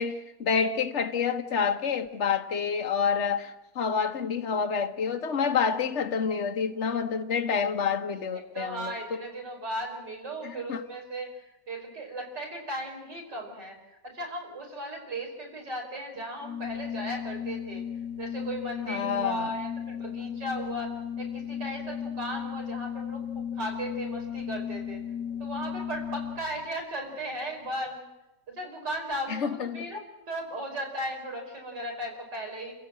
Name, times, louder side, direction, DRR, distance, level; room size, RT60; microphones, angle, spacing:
voice 1, 0.0-9.0 10.4-10.8 18.9-19.5 29.3-29.8, left 6 dB, 45° left, 1.5 m, -28 dB
voice 2, 8.5-17.8 18.2-25.0 25.4-28.1 28.5-32.7, right 1 dB, 85° right, 5.7 m, -36 dB
Organ, 16.4-26.7, left 8 dB, 90° left, 1.8 m, -35 dB
28.5 x 16.0 x 7.6 m
omnidirectional pair, 1.8 m